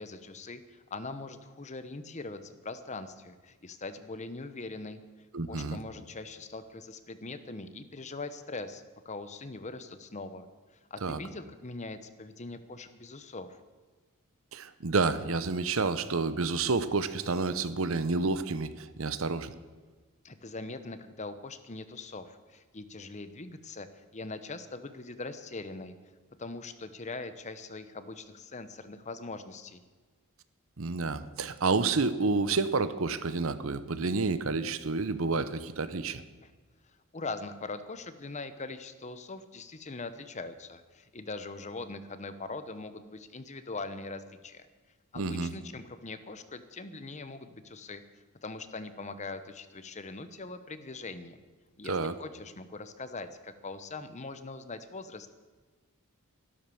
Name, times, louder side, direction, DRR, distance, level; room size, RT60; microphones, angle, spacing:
voice 1, 0.0-5.0 5.5-10.5 10.9-13.6 20.2-23.9 24.1-25.9 26.4-29.8 36.4-36.5 37.1-44.7 45.1-48.0 48.4-51.4 51.8-55.4, left 3 dB, 30° left, 11 dB, 0.9 m, -41 dB
voice 2, 5.3-5.8 11.0-11.2 14.5-19.5 30.8-36.2 45.1-45.5 51.8-52.1, right 4 dB, 65° right, 13 dB, 0.8 m, -29 dB
13.0 x 12.0 x 7.0 m, 1.4 s
head